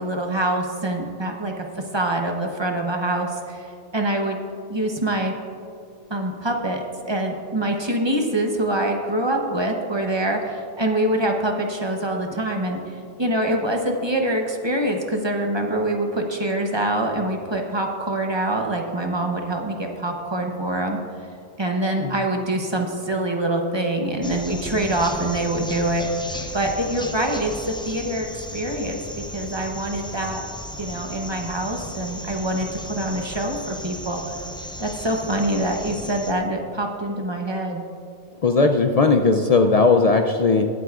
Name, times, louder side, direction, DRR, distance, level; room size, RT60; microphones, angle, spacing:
voice 1, 0.0-1.6 1.9-3.7 3.9-4.4 4.7-5.3 6.1-21.0 21.6-26.1 26.5-30.4 30.8-34.2 34.8-37.8, right 1 dB, 25° right, 2 dB, 0.8 m, -25 dB
sound 1, 24.2-36.3, equal, 5° left, 0.5 m, -35 dB
voice 2, 38.4-40.7, left 4 dB, 60° left, 5 dB, 0.4 m, -17 dB
22.0 x 8.0 x 2.4 m, 2.5 s
omnidirectional pair, 1.2 m